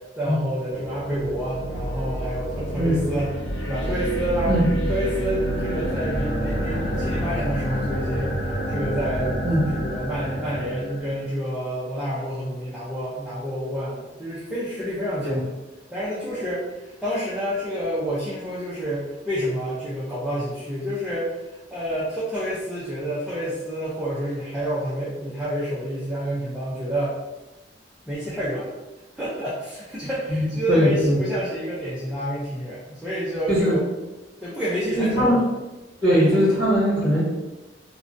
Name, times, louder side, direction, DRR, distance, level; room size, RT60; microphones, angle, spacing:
voice 1, 0.2-3.3 3.6-4.6 4.9-9.4 9.7-15.5 15.9-27.2 28.1-28.7 29.2-33.8 34.4-35.4, equal, 5° right, -10 dB, 0.5 m, -28 dB
sound 1, 0.7-11.2, equal, 85° left, 0.6 m, -28 dB
voice 2, 30.3-31.2 33.5-33.8 35.0-35.4 36.0-37.2, equal, 25° right, -9 dB, 1.4 m, -20 dB
2.6 x 2.1 x 2.5 m, 1.1 s
head